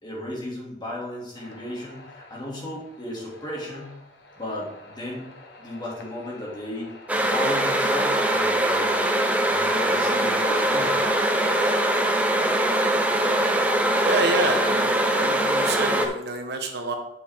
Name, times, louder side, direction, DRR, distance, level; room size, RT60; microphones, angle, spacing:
voice 1, 0.0-4.0 4.4-5.3 5.6-9.2 9.5-11.1, left 1 dB, 25° left, -4 dB, 2.4 m, -35 dB
sound 1, 1.3-12.2, left 2 dB, 65° left, 1.2 m, -44 dB
sound 2, 7.1-16.1, right 1 dB, 10° right, 0.7 m, -22 dB
voice 2, 14.0-16.9, right 2 dB, 65° right, 4 dB, 1.1 m, -27 dB
8.3 x 6.7 x 3.6 m, 0.81 s
head